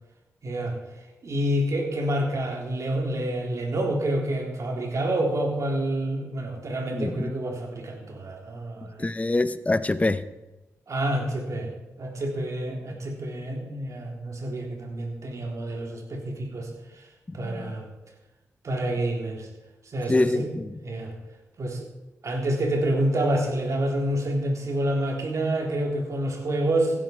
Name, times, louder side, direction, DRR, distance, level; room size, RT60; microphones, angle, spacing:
voice 1, 0.4-0.8 1.2-9.1 10.9-11.7 12.0-16.7 17.3-17.9 18.6-19.5 19.9-20.5 20.8-21.1 21.6-21.9 22.2-27.0, right 1 dB, 60° right, 1 dB, 3.5 m, -28 dB
voice 2, 6.9-7.3 9.0-10.2 17.3-17.8 20.1-20.7, left 2 dB, 25° left, 13 dB, 0.8 m, -25 dB
15.5 x 11.0 x 4.5 m, 1.0 s
cardioid pair, 60°, 6 cm